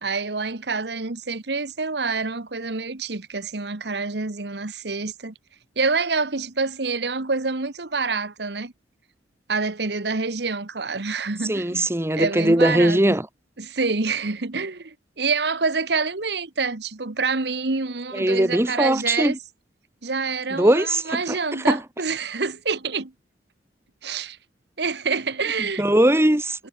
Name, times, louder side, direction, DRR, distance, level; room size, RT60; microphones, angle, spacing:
voice 1, 0.0-5.3 5.8-8.7 9.5-11.8 12.1-13.2 13.6-19.4 20.0-23.1 24.0-24.4 24.8-25.8 26.6-26.7, right 4 dB, 65° right, 1.3 m, -27 dB
voice 2, 11.5-13.2 18.1-19.4 20.6-21.4 21.7-21.8 25.8-26.6, right 1 dB, 15° right, 1.2 m, -20 dB
head